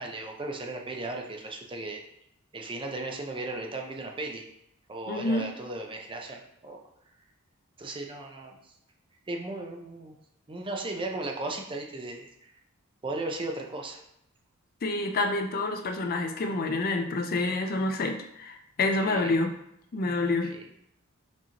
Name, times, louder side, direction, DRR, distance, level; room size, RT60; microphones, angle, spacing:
voice 1, 0.0-2.0 2.5-4.4 4.9-6.8 7.8-8.6 9.3-10.1 10.5-12.3 13.0-14.0 19.0-19.3 20.5-20.7, right 2 dB, 25° right, 2 dB, 0.6 m, -36 dB
voice 2, 5.1-5.5 14.8-19.6 19.9-20.6, left 2 dB, 45° left, 5 dB, 0.4 m, -28 dB
6.1 x 2.9 x 2.9 m, 0.76 s
head